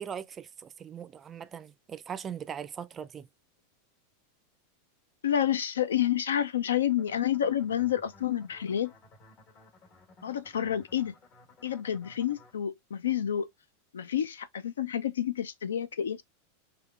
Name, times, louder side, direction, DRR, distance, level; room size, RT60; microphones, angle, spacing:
voice 1, 0.0-3.3, right 8 dB, 30° right, 0.3 m, -40 dB
voice 2, 5.2-8.9 10.2-11.1 11.6-13.5 13.9-16.2, left 10 dB, 85° left, 0.3 m, -29 dB
sound 1, 6.9-12.5, left 3 dB, 45° left, 1.3 m, -57 dB
3.5 x 2.4 x 2.3 m
hypercardioid pair, 100°, 0 cm